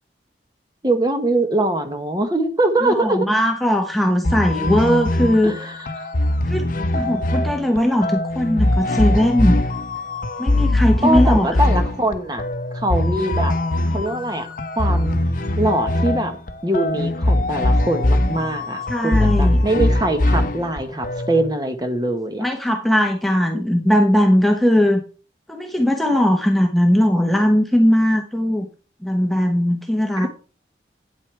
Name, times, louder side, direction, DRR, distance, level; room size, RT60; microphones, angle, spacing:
voice 1, 0.8-3.2 5.4-5.7 6.0-6.1 11.0-12.4 12.7-13.5 13.9-14.5 14.8-15.2 15.6-16.3 16.6-22.5 30.2-30.3, right 1 dB, 20° right, 7 dB, 1.2 m, -22 dB
voice 2, 2.8-5.5 6.4-9.6 10.4-11.6 18.9-19.6 22.4-25.0 25.5-28.7 29.0-30.3, equal, ahead, 2 dB, 0.9 m, -19 dB
sound 1, 4.2-21.5, left 1 dB, 50° left, 0.8 m, -21 dB
9.4 x 8.1 x 3.3 m, 0.36 s
head